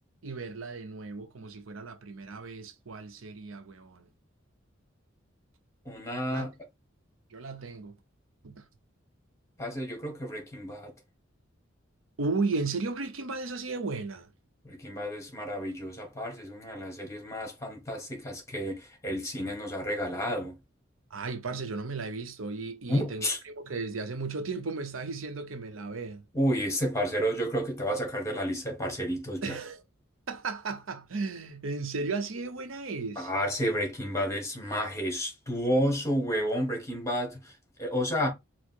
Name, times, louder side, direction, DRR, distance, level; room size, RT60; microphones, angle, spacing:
voice 1, 0.2-4.1 6.3-6.5 7.3-8.0 8.4-8.6 12.2-14.3 21.1-26.2 29.4-29.8 30.3-33.3, right 3 dB, 85° right, 0.7 m, -35 dB
voice 2, 5.8-6.5 9.6-10.9 14.6-20.6 22.9-23.4 26.3-29.5 33.1-38.3, equal, 15° left, 1.5 m, -31 dB
4.6 x 2.0 x 4.3 m
head